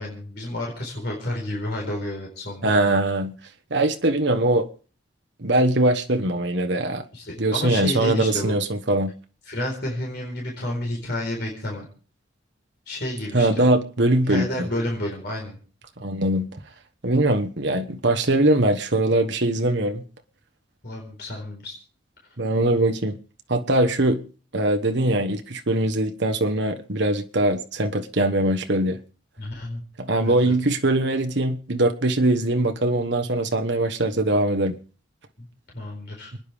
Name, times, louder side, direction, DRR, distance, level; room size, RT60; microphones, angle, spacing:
voice 1, 0.0-3.0 7.1-8.5 9.4-11.9 12.9-13.7 14.3-15.6 20.8-21.8 29.4-29.8 30.2-30.5 35.4-35.5 35.7-36.3, left 1 dB, 55° left, 4.5 m, -31 dB
voice 2, 2.6-3.4 3.7-4.7 5.4-7.0 7.4-9.1 13.3-14.7 16.0-16.6 17.0-20.0 22.4-23.2 23.5-24.2 24.5-29.0 30.0-34.8, right 1 dB, 60° right, 1.2 m, -22 dB
29.5 x 10.0 x 3.5 m
head